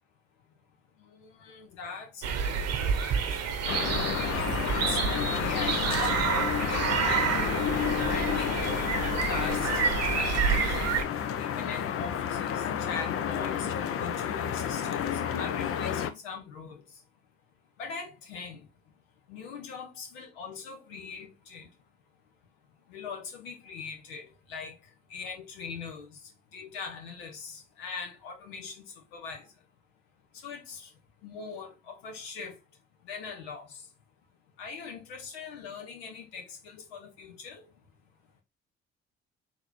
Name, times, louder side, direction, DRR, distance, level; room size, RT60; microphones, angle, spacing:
voice 1, 1.0-3.2 4.3-7.7 8.0-10.8 11.4-15.1 15.3-16.8 17.8-18.7 19.3-21.7 22.9-24.7 25.1-26.1 26.5-28.8 29.1-29.4 30.4-30.9 31.2-32.6 33.0-33.8 34.6-37.7, left 5 dB, 75° left, 1.2 m, -41 dB
sound 1, 2.2-11.0, right 7 dB, 55° right, 0.9 m, -29 dB
sound 2, 3.7-16.1, left 8 dB, 45° left, 0.6 m, -30 dB
4.0 x 3.0 x 4.2 m
figure-of-eight pair, 45°, 31 cm